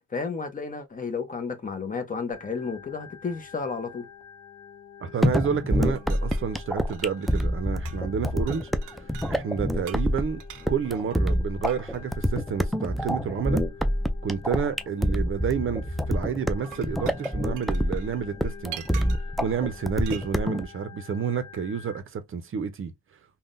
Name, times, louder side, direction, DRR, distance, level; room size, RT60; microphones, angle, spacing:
voice 1, 0.1-4.1, left 5 dB, 25° left, 0.7 m, -32 dB
Organ, 2.3-22.0, left 6 dB, 70° left, 0.8 m, -48 dB
voice 2, 5.0-10.4 10.7-13.6 14.2-18.8 19.4-22.9, right 7 dB, 45° right, 0.6 m, -30 dB
sound 1, 5.2-20.6, equal, ahead, 0.3 m, -26 dB
sound 2, 6.0-7.6 7.9-8.2 8.5-9.3 9.9-12.1 13.4-13.5 16.4-19.4 20.1-20.3, right 12 dB, 85° right, 0.5 m, -45 dB
3.5 x 2.2 x 2.5 m
cardioid pair, 90°, 30 cm